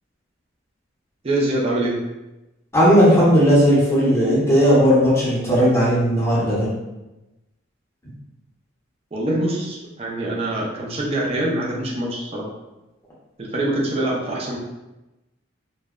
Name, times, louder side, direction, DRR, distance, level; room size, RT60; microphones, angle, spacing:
voice 1, 1.2-1.9 9.1-12.5 13.4-14.6, right 1 dB, 30° right, -3 dB, 0.4 m, -24 dB
voice 2, 2.7-6.7, equal, 15° left, -8 dB, 0.7 m, -16 dB
2.6 x 2.1 x 2.3 m, 1.0 s
head